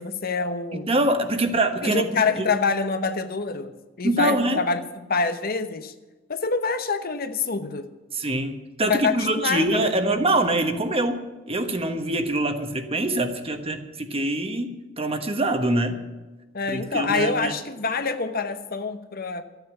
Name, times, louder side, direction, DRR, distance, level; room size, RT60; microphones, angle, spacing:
voice 1, 0.0-0.9 1.8-3.7 4.0-5.9 6.3-7.9 8.8-9.9 16.5-19.4, left 4 dB, 50° left, 9 dB, 1.0 m, -26 dB
voice 2, 0.7-2.1 2.4-2.5 4.0-4.6 8.1-16.0 16.7-17.5, right 2 dB, 30° right, 7 dB, 1.3 m, -24 dB
13.0 x 9.3 x 8.0 m, 1.2 s
head